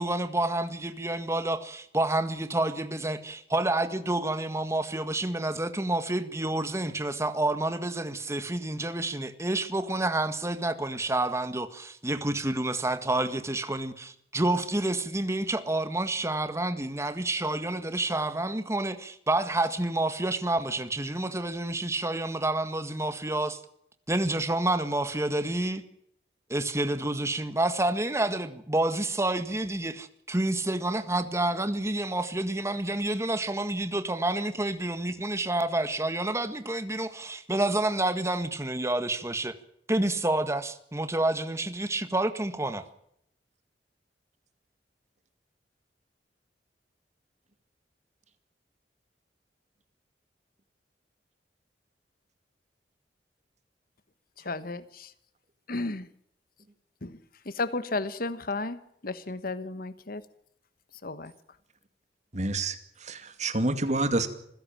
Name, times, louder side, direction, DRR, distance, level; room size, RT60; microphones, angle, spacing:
voice 1, 0.0-23.6 24.1-25.8 26.5-39.5 39.9-42.8, right 2 dB, 15° right, 1.7 m, -29 dB
voice 2, 54.4-55.1 55.7-56.1 57.0-57.2 57.4-60.2 61.0-61.3, left 3 dB, 55° left, 1.2 m, -33 dB
voice 3, 62.3-62.8 63.0-64.3, right 2 dB, 40° right, 2.5 m, -27 dB
26.5 x 16.0 x 7.5 m
head